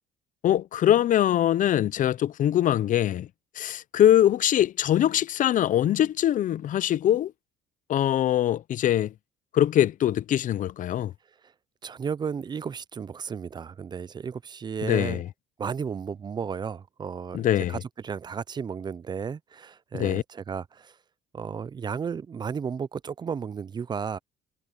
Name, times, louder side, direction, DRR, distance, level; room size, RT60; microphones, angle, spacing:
voice 1, 0.4-3.3 3.6-7.3 7.9-9.1 9.5-11.1 14.8-15.3 17.3-17.8 19.9-20.2, left 11 dB, 50° left, 0.6 m, -23 dB
voice 2, 11.8-15.2 15.6-17.4 17.7-20.9 21.3-24.2, right 6 dB, 25° right, 0.4 m, -33 dB
cardioid pair, 110°, 17 cm